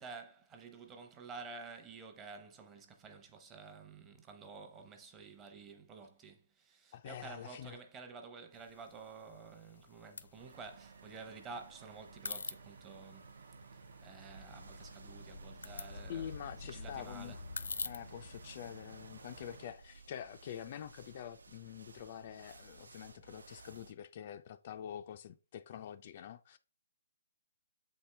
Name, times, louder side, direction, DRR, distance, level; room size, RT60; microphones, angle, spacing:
voice 1, 0.0-13.3 14.0-16.3 16.6-17.4, right 4 dB, 15° right, 0.8 m, -51 dB
voice 2, 6.9-7.8 16.1-17.4 17.8-26.6, left 10 dB, 35° left, 0.3 m, -46 dB
sound 1, 8.5-19.6, left 4 dB, 85° left, 0.6 m, -48 dB
sound 2, 10.4-19.7, right 6 dB, 50° right, 0.5 m, -57 dB
sound 3, 14.2-23.9, right 3 dB, 90° right, 0.7 m, -58 dB
7.6 x 4.3 x 3.3 m
hypercardioid pair, 165°, 0 cm